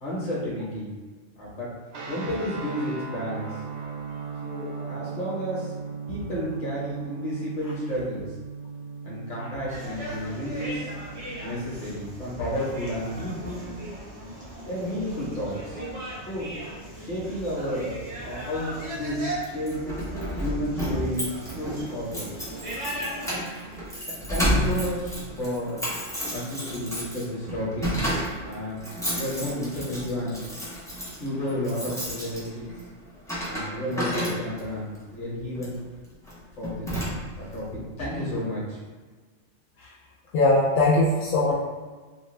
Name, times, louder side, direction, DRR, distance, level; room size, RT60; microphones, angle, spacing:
voice 1, 0.0-0.9 1.4-1.7 2.1-3.6 4.4-5.7 6.1-8.4 9.0-10.9 11.4-13.7 14.6-15.8 16.3-16.5 17.0-19.9 20.4-22.5 23.2-23.5 24.1-25.8 26.3-28.2 28.4-28.8 29.2-30.4 31.2-32.7 33.4-35.7 36.6-37.0 37.4-38.8, equal, 40° left, -7 dB, 1.0 m, -31 dB
sound 1, 1.9-12.3, right 5 dB, 85° right, 1.0 m, -38 dB
sound 2, 9.7-23.4, right 1 dB, 40° right, 0.8 m, -38 dB
Keys jangling, 19.4-34.8 35.5-35.8 36.3-36.4 36.6-37.5, equal, 5° left, 0.3 m, -31 dB
voice 2, 40.3-41.5, left 2 dB, 75° left, -6 dB, 0.9 m, -20 dB
2.6 x 2.2 x 3.1 m, 1.4 s
omnidirectional pair, 1.4 m